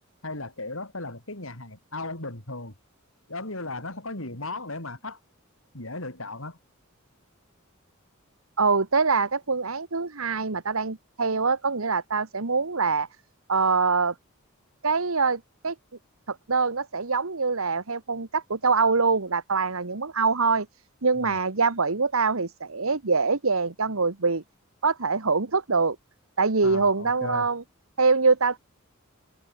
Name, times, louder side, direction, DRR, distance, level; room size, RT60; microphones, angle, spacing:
voice 1, 0.2-2.7 3.3-5.2 5.7-6.6 21.2-21.3 26.6-27.5, left 2 dB, 70° left, 6.3 m, -36 dB
voice 2, 8.6-13.1 13.5-14.1 14.8-15.7 16.3-20.7 21.0-24.4 24.8-26.0 26.4-27.6 28.0-28.6, right 4 dB, 80° right, 1.4 m, -24 dB
head